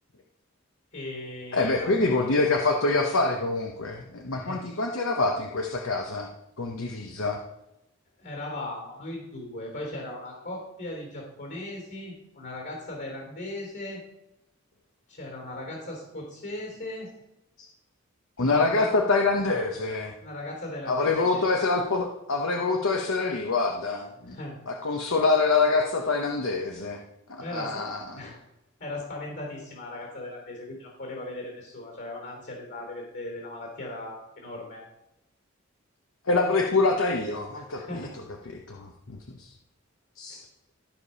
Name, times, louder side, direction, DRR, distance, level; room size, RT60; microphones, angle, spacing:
voice 1, 0.9-1.9 4.4-4.6 8.2-14.0 15.1-17.1 18.4-18.9 20.2-21.4 24.3-24.6 27.4-27.9 28.2-28.4 28.8-34.8 37.5-38.1, left 1 dB, 60° left, -1 dB, 3.3 m, -38 dB
voice 2, 1.5-6.3 6.6-7.4 18.4-20.1 20.9-24.4 24.7-27.0 27.3-28.2 36.3-38.1 38.7-39.5 40.2-40.4, left 3 dB, 75° left, 2 dB, 1.0 m, -25 dB
13.5 x 5.0 x 5.5 m, 0.89 s
head